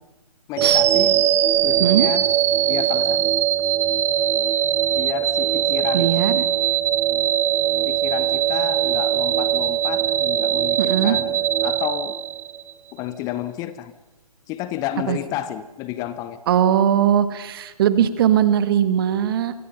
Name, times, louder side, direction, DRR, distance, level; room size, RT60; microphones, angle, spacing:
voice 1, 0.5-1.3 1.6-2.3 2.7-3.2 5.0-6.4 7.9-12.2 12.9-13.9 14.5-16.4, left 12 dB, 20° left, 13 dB, 0.8 m, -31 dB
sound 1, 0.6-12.7, right 11 dB, 15° right, 1.0 m, -21 dB
voice 2, 5.9-6.4 10.8-11.2 15.1-15.2 16.5-19.5, right 9 dB, 40° right, 12 dB, 1.7 m, -19 dB
29.5 x 25.0 x 5.6 m, 1.1 s
figure-of-eight pair, 130°, 19 cm